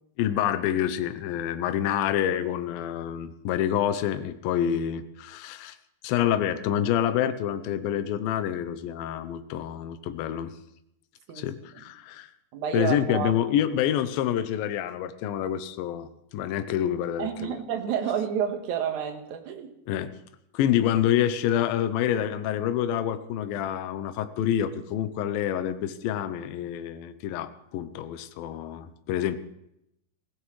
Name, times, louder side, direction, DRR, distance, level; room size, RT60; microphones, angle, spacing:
voice 1, 0.2-5.8 6.0-10.5 11.4-12.3 12.7-16.1 16.3-17.6 19.9-20.1 20.5-29.4, left 10 dB, 80° left, 11 dB, 2.5 m, -27 dB
voice 2, 12.5-13.3 17.2-19.7, right 8 dB, 60° right, 4 dB, 2.6 m, -29 dB
23.0 x 16.0 x 3.2 m, 0.79 s
omnidirectional pair, 4.3 m